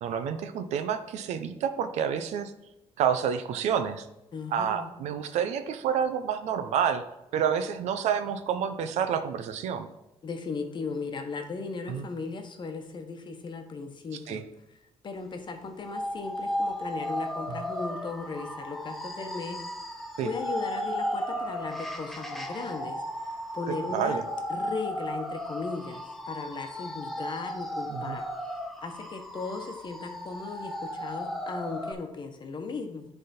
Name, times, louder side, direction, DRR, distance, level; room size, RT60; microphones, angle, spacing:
voice 1, 0.0-2.5 3.0-4.1 4.5-7.0 7.3-9.9 11.9-12.1 14.3-14.4 17.5-17.6 20.2-20.3 23.7-24.2 27.9-28.2, right 8 dB, 80° right, 10 dB, 0.6 m, -29 dB
voice 2, 4.3-4.9 10.2-14.4 15.0-19.6 20.2-23.0 23.5-24.2 24.5-28.2 28.8-33.1, left 4 dB, 40° left, 5 dB, 1.1 m, -37 dB
sound 1, 15.8-31.9, equal, ahead, 1.0 m, -35 dB
10.5 x 3.6 x 4.3 m, 0.92 s
cardioid pair, 95°, 11 cm